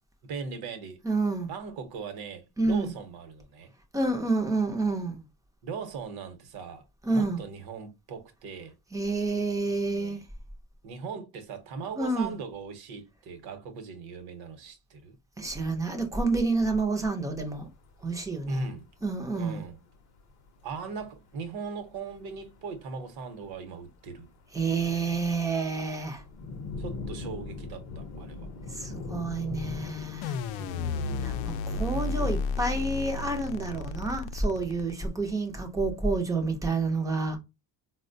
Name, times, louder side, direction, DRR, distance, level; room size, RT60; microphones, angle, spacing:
voice 1, 0.2-1.0 1.5-3.7 5.6-8.7 9.6-10.2 10.8-15.1 18.5-18.9 19.3-19.8 20.6-24.3 26.8-28.5 30.5-30.9, right 5 dB, 60° right, 0.8 m, -39 dB
voice 2, 1.0-1.5 2.6-2.9 3.9-5.2 7.0-7.4 8.9-10.2 12.0-12.3 15.4-17.7 18.0-18.7 19.0-19.6 24.5-26.2 28.7-30.4 31.2-37.4, right 3 dB, 10° right, 0.3 m, -29 dB
sound 1, 17.0-17.1 17.4-17.5 17.7-18.1 18.4-18.5 18.7-19.0 19.6-19.8 20.2-20.3 20.7-20.8 21.4-21.8 22.2-22.7 23.0-24.0 24.2-32.3, left 3 dB, 40° left, 0.6 m, -40 dB
sound 2, 30.2-35.3, left 3 dB, 85° left, 0.5 m, -32 dB
4.2 x 2.1 x 2.5 m
cardioid pair, 175°, 44 cm